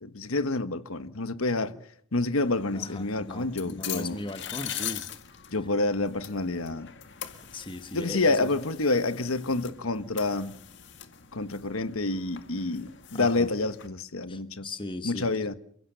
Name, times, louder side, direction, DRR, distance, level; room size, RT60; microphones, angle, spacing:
voice 1, 0.0-1.8 2.1-4.2 5.5-6.9 7.9-10.5 11.3-14.7 15.0-15.5, left 2 dB, 90° left, 1.4 m, -28 dB
sound 1, 2.3-13.9, left 10 dB, 55° left, 1.9 m, -42 dB
voice 2, 2.7-5.1 7.5-8.5 13.1-13.5 14.3-15.3, left 2 dB, 25° left, 1.3 m, -38 dB
29.0 x 16.5 x 6.9 m
head